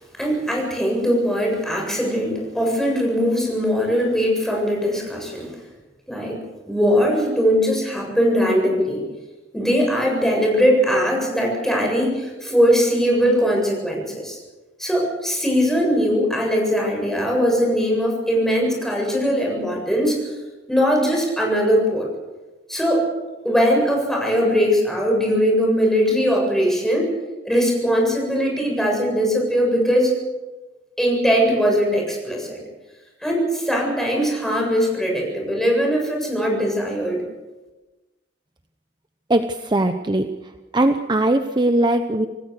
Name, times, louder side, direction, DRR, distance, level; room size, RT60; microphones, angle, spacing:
voice 1, 0.2-5.5 6.1-6.4 6.7-9.0 9.5-14.4 14.8-20.2 20.7-22.1 22.7-23.0 23.4-27.1 27.4-30.1 31.0-32.6 33.2-37.2, equal, ahead, -1 dB, 7.8 m, -20 dB
voice 2, 39.3-40.3 40.7-42.3, right 1 dB, 25° right, 7 dB, 0.9 m, -20 dB
27.5 x 18.0 x 6.7 m, 1.2 s
head